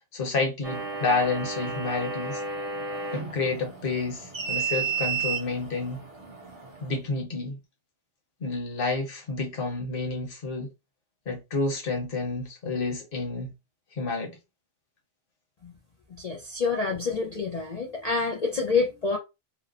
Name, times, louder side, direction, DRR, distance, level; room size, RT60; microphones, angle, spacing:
voice 1, 0.1-2.4 3.1-6.0 6.8-7.6 8.4-10.7 11.3-13.5 13.9-14.4, left 3 dB, 50° left, 1.0 m, -29 dB
sound 1, 0.6-7.0, right 5 dB, 45° right, 0.4 m, -33 dB
voice 2, 16.2-19.2, left 4 dB, 70° left, 0.3 m, -27 dB
3.0 x 2.0 x 2.4 m
omnidirectional pair, 1.3 m